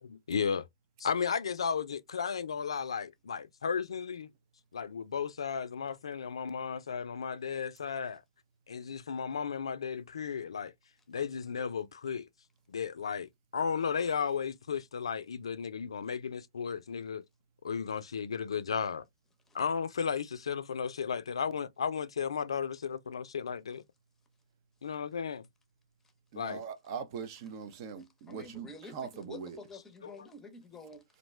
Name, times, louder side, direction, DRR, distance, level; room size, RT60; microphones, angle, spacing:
voice 1, 0.0-0.6 1.0-4.3 4.7-8.2 8.7-10.7 11.1-12.3 12.7-17.2 17.6-19.0 19.5-23.8 24.8-25.5 26.3-26.7 30.0-30.2, left 6 dB, 90° left, 0.4 m, -34 dB
voice 2, 26.3-29.6, right 6 dB, 45° right, 0.5 m, -41 dB
voice 3, 28.3-31.0, left 2 dB, 10° left, 0.7 m, -49 dB
2.6 x 2.2 x 3.1 m
hypercardioid pair, 135°, 3 cm